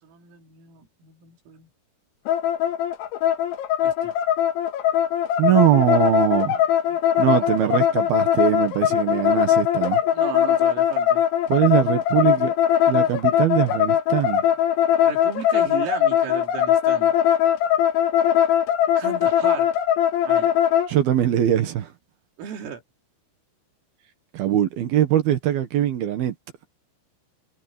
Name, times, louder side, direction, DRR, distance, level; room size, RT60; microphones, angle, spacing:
voice 1, 0.0-1.7 3.8-4.1 7.4-8.0 10.1-11.2 15.0-17.1 19.0-19.7 20.3-20.6 22.4-22.8, right 8 dB, 80° right, 5.9 m, -35 dB
sound 1, 2.3-20.9, left 10 dB, 75° left, 3.6 m, -20 dB
voice 2, 5.4-6.6 7.2-10.0 11.5-12.5 12.9-14.4 20.9-21.9 24.3-26.4, right 11 dB, 65° right, 2.8 m, -21 dB
omnidirectional pair, 5.9 m